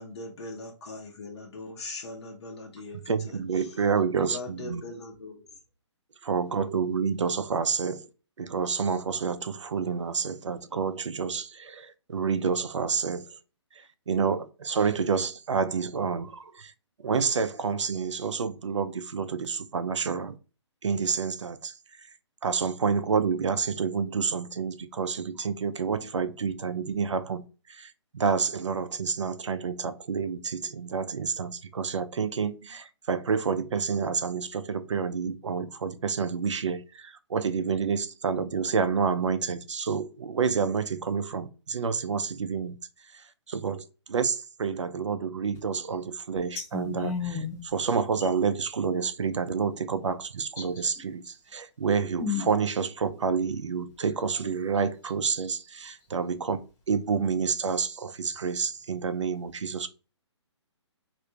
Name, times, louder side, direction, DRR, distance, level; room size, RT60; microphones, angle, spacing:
voice 1, 0.0-3.7 4.2-5.5, left 2 dB, 60° left, 0.9 m, -41 dB
voice 2, 3.1-4.8 6.2-8.1 8.4-13.3 14.1-16.7 17.0-20.4 20.8-21.7 22.4-27.4 27.7-42.8 43.5-56.6 56.9-59.9, right 5 dB, 75° right, 0.5 m, -29 dB
voice 3, 46.7-47.6 50.6-50.7 52.2-52.5, left 7 dB, 20° left, 0.6 m, -31 dB
3.2 x 2.5 x 2.8 m
figure-of-eight pair, 135°, 15 cm